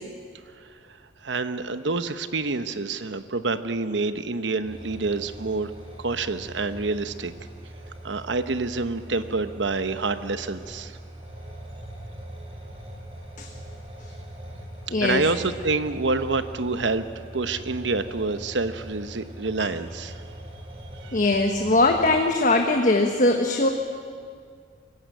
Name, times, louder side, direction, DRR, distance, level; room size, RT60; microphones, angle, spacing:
voice 1, 1.2-5.7 6.0-7.3 8.0-11.0 15.0-17.0 17.3-20.2 21.0-21.2, right 3 dB, 85° right, 11 dB, 1.0 m, -27 dB
sound 1, 4.6-22.2, right 1 dB, 35° right, 6.0 m, -41 dB
voice 2, 14.9-15.2 21.1-23.7, left 2 dB, 45° left, 3 dB, 1.3 m, -20 dB
23.5 x 15.0 x 9.3 m, 2.2 s
head